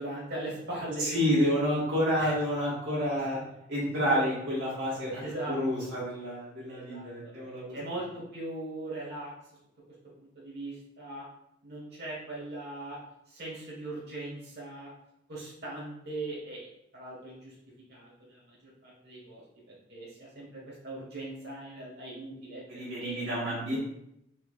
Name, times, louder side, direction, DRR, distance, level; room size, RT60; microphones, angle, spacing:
voice 1, 0.0-1.5 2.2-2.3 4.1-4.2 5.1-5.9 6.7-7.1 7.7-9.3 10.2-11.2 11.6-13.0 13.3-14.9 15.3-16.7 16.9-17.5 17.9-23.3, right 2 dB, 60° right, -5 dB, 1.4 m, -40 dB
voice 2, 1.0-3.4 3.7-7.8 22.7-23.8, equal, 75° right, -8 dB, 1.4 m, -29 dB
4.4 x 2.9 x 2.4 m, 0.79 s
head